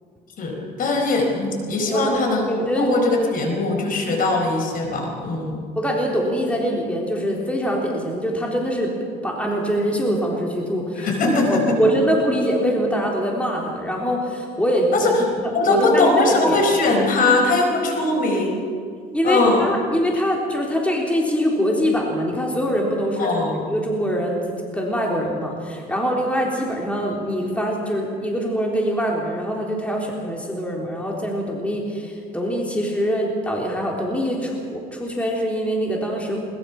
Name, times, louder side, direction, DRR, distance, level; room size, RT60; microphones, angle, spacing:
voice 1, 0.4-5.6 10.9-11.8 14.9-15.2 15.5-18.7 19.2-19.7 23.2-23.6, left 2 dB, 55° left, 3 dB, 4.8 m, -20 dB
voice 2, 1.9-2.9 4.1-4.2 5.8-8.9 9.2-16.6 19.1-36.4, equal, 5° left, -1 dB, 3.7 m, -23 dB
21.5 x 20.5 x 6.1 m, 2.2 s
cardioid pair, 110°, 17 cm